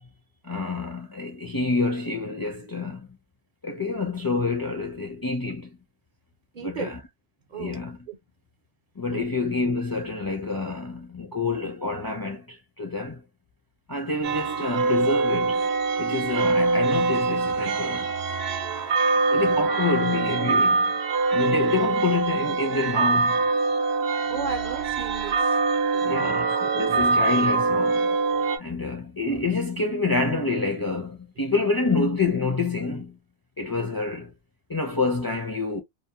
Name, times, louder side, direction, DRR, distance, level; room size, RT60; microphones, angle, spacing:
voice 1, 0.4-3.1 3.6-5.8 6.6-6.9 7.6-8.0 9.0-13.2 13.9-15.7 16.0-18.1 19.3-20.9 21.3-23.4 26.0-28.2 28.6-33.2 33.6-34.3 34.7-35.8, left 3 dB, 30° left, 0.4 m, -27 dB
voice 2, 6.5-6.9 7.5-7.8 8.1-8.2 9.1-9.3 24.3-25.6 25.9-26.4 26.9-27.0, right 5 dB, 55° right, 0.6 m, -35 dB
sound 1, 14.2-28.6, right 4 dB, 85° right, 0.9 m, -24 dB
2.6 x 2.0 x 2.8 m
omnidirectional pair, 1.0 m